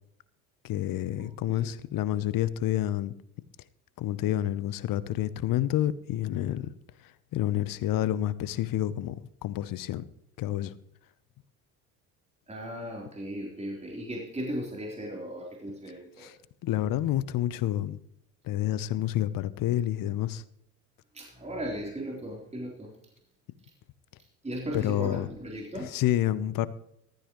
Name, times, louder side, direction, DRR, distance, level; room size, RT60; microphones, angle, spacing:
voice 1, 0.6-3.1 4.0-6.7 7.3-10.0 10.4-10.7 16.2-16.3 16.6-18.0 18.4-20.4 24.7-25.3 25.9-26.7, left 12 dB, 50° left, 17 dB, 0.9 m, -29 dB
voice 2, 1.2-1.7 12.5-16.3 21.1-22.9 24.4-25.9, equal, 15° right, -1 dB, 3.8 m, -37 dB
15.0 x 13.0 x 3.1 m, 0.73 s
hypercardioid pair, 65°, 45 cm